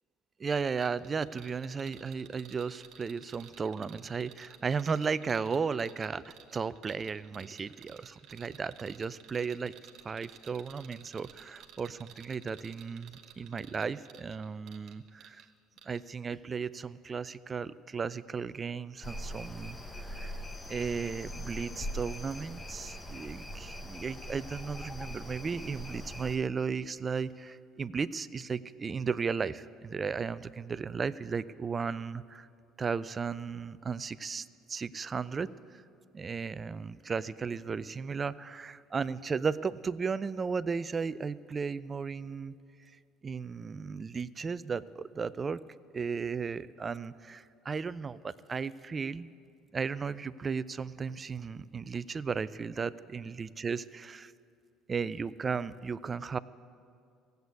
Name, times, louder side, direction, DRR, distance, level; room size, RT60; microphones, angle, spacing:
voice 1, 0.4-9.7 10.0-15.5 15.9-20.3 20.7-32.5 32.8-35.8 36.1-42.5 43.2-45.6 45.9-49.3 49.7-54.3 54.9-56.4, right 5 dB, 30° right, 17 dB, 0.4 m, -35 dB
sound 1, 0.8-15.5 15.8-16.0, right 10 dB, 65° right, 1.1 m, -54 dB
sound 2, 19.0-26.4, equal, 20° left, 0.9 m, -41 dB
16.0 x 8.0 x 8.2 m, 2.4 s
supercardioid pair, 85°, 0 cm